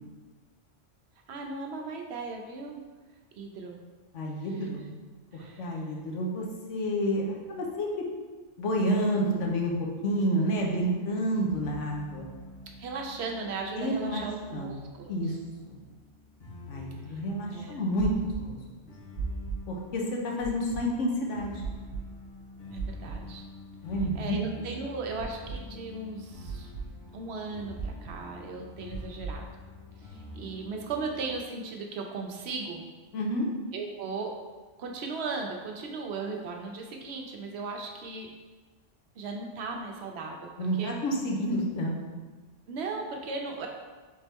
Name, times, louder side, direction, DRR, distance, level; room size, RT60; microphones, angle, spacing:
voice 1, 1.3-2.8 3.4-3.8 4.4-4.7 5.3-5.8 12.8-15.4 17.5-17.8 22.7-23.4 24.1-26.7 27.1-29.4 30.0-32.8 33.7-34.3 34.8-38.3 39.2-40.9 42.7-43.7, right 4 dB, 65° right, 2 dB, 0.8 m, -37 dB
voice 2, 4.1-4.8 5.3-8.0 8.6-12.3 13.8-14.2 14.5-14.7 15.1-15.3 15.7-15.8 16.7-18.6 19.7-21.5 23.8-24.4 33.1-33.5 40.6-42.0, equal, 80° left, -1 dB, 1.2 m, -29 dB
sound 1, 11.5-31.3, left 2 dB, 60° left, 1.4 m, -48 dB
sound 2, 18.0-18.4 19.1-19.6 20.4-20.8 21.6-22.0 22.7-23.2 23.9-24.3 25.2-25.6 26.4-26.8 27.7-28.1 28.9-29.3, right 5 dB, 40° right, 1.2 m, -35 dB
4.1 x 3.6 x 3.4 m, 1.3 s
omnidirectional pair, 1.2 m